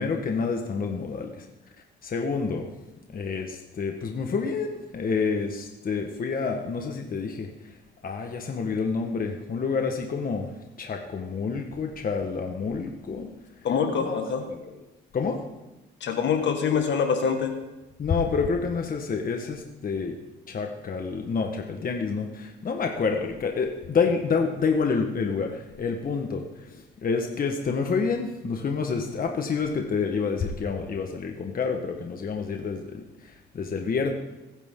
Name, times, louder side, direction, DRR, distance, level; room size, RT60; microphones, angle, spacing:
voice 1, 0.0-1.5 2.0-2.7 3.1-7.8 8.0-13.3 13.9-14.2 14.5-14.7 15.1-15.4 18.0-20.1 20.5-34.1, left 5 dB, 45° left, 3 dB, 1.4 m, -28 dB
voice 2, 13.6-14.4 16.0-17.6, left 6 dB, 65° left, 5 dB, 1.8 m, -25 dB
22.0 x 9.9 x 3.8 m, 1.0 s
cardioid pair, 90°, 20 cm